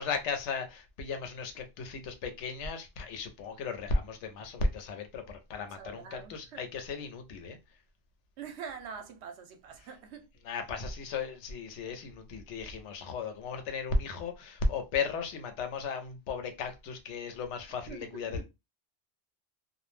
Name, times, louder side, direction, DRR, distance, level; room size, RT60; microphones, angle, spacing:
voice 1, 0.0-7.6 10.5-18.5, left 4 dB, 90° left, 0.9 m, -35 dB
voice 2, 5.8-6.6 8.4-10.3 17.9-18.2, right 7 dB, 75° right, 0.9 m, -44 dB
2.3 x 2.0 x 3.0 m
omnidirectional pair, 1.2 m